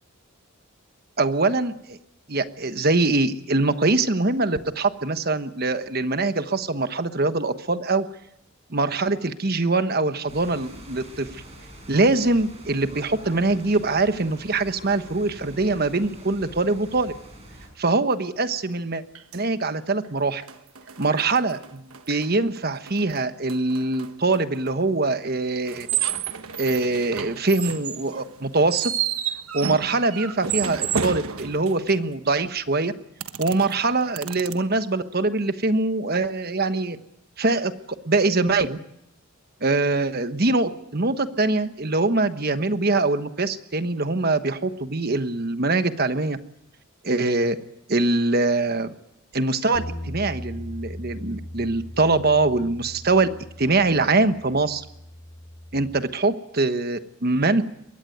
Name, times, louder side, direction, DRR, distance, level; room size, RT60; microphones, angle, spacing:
voice 1, 1.2-2.0 2.3-8.1 8.7-11.4 11.9-17.1 17.8-19.0 19.3-20.4 21.0-25.9 26.6-28.9 29.5-32.9 33.4-37.0 37.4-37.7 38.0-38.8 39.6-46.4 47.0-47.6 47.9-48.9 49.3-53.3 53.6-54.8 55.7-57.6, right 3 dB, 45° right, 10 dB, 1.2 m, -23 dB
sound 1, 10.3-17.7, right 1 dB, 30° right, 6.4 m, -44 dB
sound 2, 18.4-18.5 19.2-19.6 20.0-20.1 20.4-22.3 22.6-24.7 25.7-32.1 33.2-34.5, right 8 dB, 80° right, 1.3 m, -31 dB
sound 3, 49.7-56.0, left 1 dB, 75° left, 3.3 m, -39 dB
22.5 x 17.5 x 9.3 m, 0.80 s
head